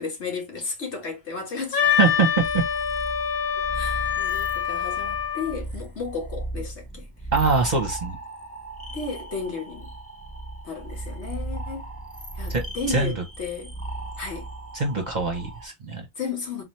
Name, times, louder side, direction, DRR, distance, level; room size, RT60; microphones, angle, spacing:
voice 1, 0.0-1.9 3.7-7.1 8.9-9.9 10.6-11.9 12.4-13.7 14.2-14.5 16.2-16.6, left 4 dB, 80° left, 1.8 m, -33 dB
Wind instrument woodwind instrument, 1.7-5.6, left 8 dB, 65° left, 1.1 m, -25 dB
sound 1, 1.8-15.7, right 2 dB, 10° left, 0.8 m, -37 dB
voice 2, 2.0-2.6 7.3-8.2 12.5-12.6 12.9-13.1 14.7-16.0, right 4 dB, 45° right, 0.9 m, -23 dB
3.8 x 2.8 x 3.1 m
omnidirectional pair, 1.1 m